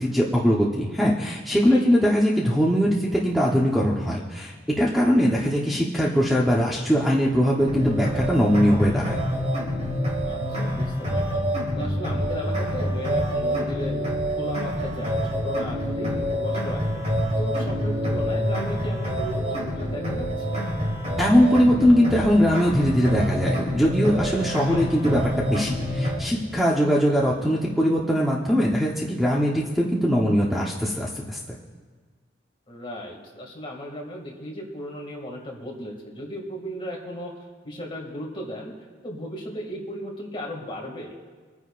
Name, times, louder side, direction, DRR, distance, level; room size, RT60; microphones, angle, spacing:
voice 1, 0.0-9.2 21.2-31.4, equal, ahead, -4 dB, 1.0 m, -21 dB
voice 2, 1.5-1.9 10.2-10.8 11.1-11.4 11.8-14.0 14.3-17.0 17.4-20.6 24.7-24.9 32.7-37.3 37.6-38.7 39.0-41.1, equal, 30° left, -2 dB, 2.3 m, -35 dB
sound 1, 7.6-26.2, equal, 40° right, 3.4 m, -27 dB
26.5 x 9.7 x 2.5 m, 1.5 s
head